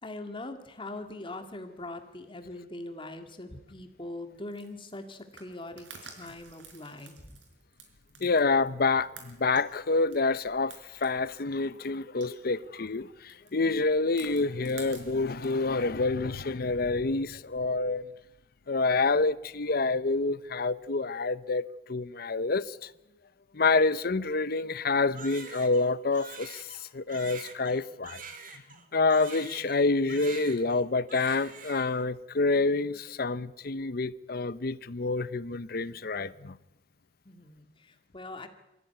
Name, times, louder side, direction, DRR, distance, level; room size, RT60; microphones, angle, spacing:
voice 1, 0.0-7.4 37.3-38.5, left 2 dB, 30° left, 2.0 m, -42 dB
sound 1, 4.3-16.0, right 5 dB, 90° right, 4.6 m, -52 dB
voice 2, 8.2-10.7 11.0-18.1 18.7-21.6 21.9-22.6 23.5-26.6 26.9-28.2 28.9-36.5, left 3 dB, 55° left, 0.8 m, -27 dB
Crying sobbing, 25.1-29.8 30.1-30.8 31.1-32.0, right 5 dB, 50° right, 2.6 m, -45 dB
24.0 x 15.0 x 9.4 m
head